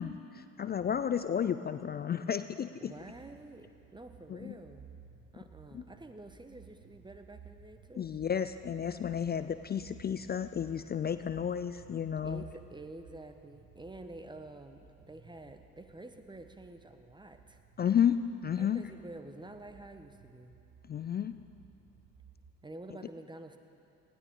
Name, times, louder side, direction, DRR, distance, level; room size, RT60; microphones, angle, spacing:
voice 1, 0.0-2.9 4.3-4.5 5.7-5.8 8.0-12.4 17.8-18.8 20.9-21.4, left 8 dB, 25° left, 11 dB, 0.4 m, -32 dB
voice 2, 2.8-4.9 5.3-8.2 12.2-17.6 18.6-20.5 22.6-23.6, right 2 dB, 10° right, 7 dB, 1.2 m, -49 dB
sound 1, 2.8-22.6, right 7 dB, 45° right, 1.2 m, -57 dB
19.5 x 16.0 x 3.8 m, 2.6 s
figure-of-eight pair, 55°, 47 cm